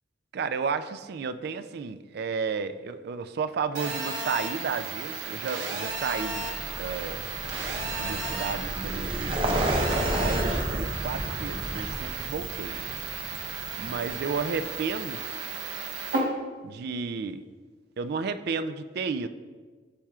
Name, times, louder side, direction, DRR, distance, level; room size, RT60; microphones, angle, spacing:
voice 1, 0.3-7.2 8.0-12.8 13.8-15.2 16.6-17.4 18.0-19.3, right 5 dB, 60° right, 12 dB, 0.3 m, -33 dB
Telephone, 3.7-16.2, right 4 dB, 80° right, 1.2 m, -34 dB
Vehicle, 5.9-14.7, right 1 dB, 30° right, 0.7 m, -32 dB
12.0 x 4.3 x 2.4 m, 1.4 s
head